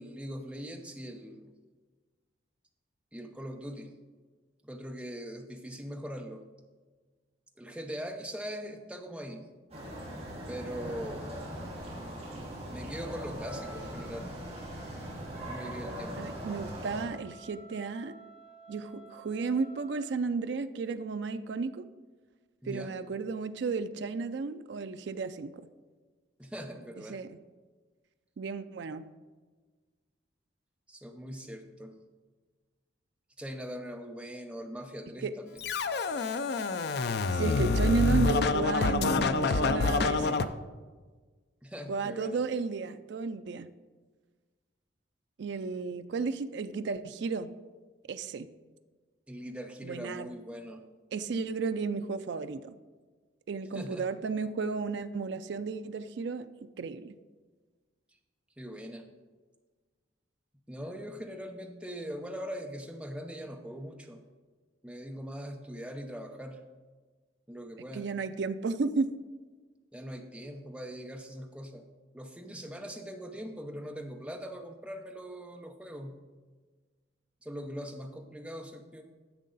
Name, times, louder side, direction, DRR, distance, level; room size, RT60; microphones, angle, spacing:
voice 1, 0.0-1.5 3.1-3.9 4.6-6.4 7.6-9.5 10.5-11.3 12.7-14.3 15.4-16.3 22.6-22.9 26.4-27.2 30.9-32.0 33.4-35.6 41.6-42.4 49.3-50.8 53.7-54.1 58.6-59.1 60.7-64.2 64.8-66.6 67.5-68.1 69.9-71.8 72.1-76.2 77.4-79.0, equal, 5° right, 3 dB, 0.7 m, -41 dB
sound 1, 9.7-17.1, equal, 35° right, 2.8 m, -40 dB
Wind instrument woodwind instrument, 13.4-20.2, right 4 dB, 85° left, 2.5 m, -54 dB
voice 2, 16.2-18.1 18.7-21.9 22.7-25.5 27.1-27.4 28.4-29.1 35.2-35.3 37.3-40.5 41.9-43.7 45.4-47.5 48.1-48.5 49.8-50.3 51.1-52.7 53.5-56.5 56.8-57.1 67.9-69.2, right 4 dB, 65° right, 10 dB, 0.4 m, -33 dB
Scratching (performance technique), 35.6-40.4, left 3 dB, 55° left, 0.4 m, -27 dB
10.5 x 7.4 x 4.0 m, 1.4 s
head